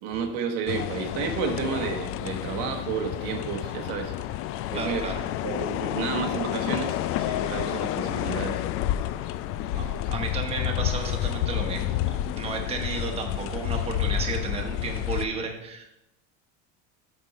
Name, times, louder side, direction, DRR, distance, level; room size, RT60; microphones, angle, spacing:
voice 1, 0.0-4.2 4.7-5.0 5.4-8.6, right 6 dB, 80° right, 4 dB, 1.2 m, -31 dB
sound 1, 0.7-15.3, left 12 dB, 50° left, 0.4 m, -29 dB
voice 2, 4.7-5.2 9.2-9.3 9.7-15.9, right 4 dB, 20° right, 2 dB, 1.1 m, -33 dB
8.1 x 6.1 x 4.2 m, 0.87 s
cardioid pair, 150°, 30 cm